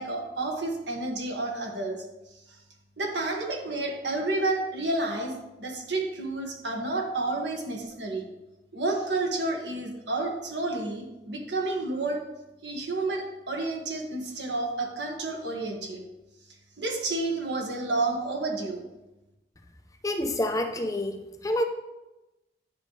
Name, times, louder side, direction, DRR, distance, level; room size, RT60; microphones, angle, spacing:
voice 1, 0.0-2.0 3.0-8.2 8.7-12.2 12.6-16.0 16.8-18.8, right 2 dB, 90° right, 1 dB, 1.7 m, -30 dB
voice 2, 20.0-21.6, left 1 dB, 20° left, 5 dB, 0.6 m, -28 dB
10.0 x 6.4 x 3.3 m, 1.0 s
head